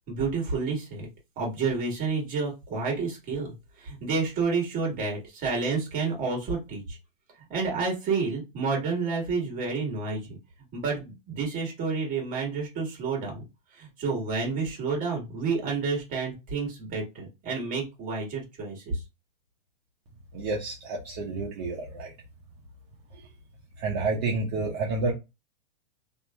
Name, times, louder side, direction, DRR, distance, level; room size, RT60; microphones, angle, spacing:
voice 1, 0.1-1.1 1.4-7.0 7.5-10.4 10.7-13.4 13.7-19.0, right 4 dB, 30° right, 0 dB, 1.7 m, -30 dB
voice 2, 20.3-22.1 23.8-25.1, right 3 dB, 45° right, -2 dB, 0.9 m, -29 dB
2.8 x 2.7 x 2.3 m, 0.24 s
hypercardioid pair, 140°, 29 cm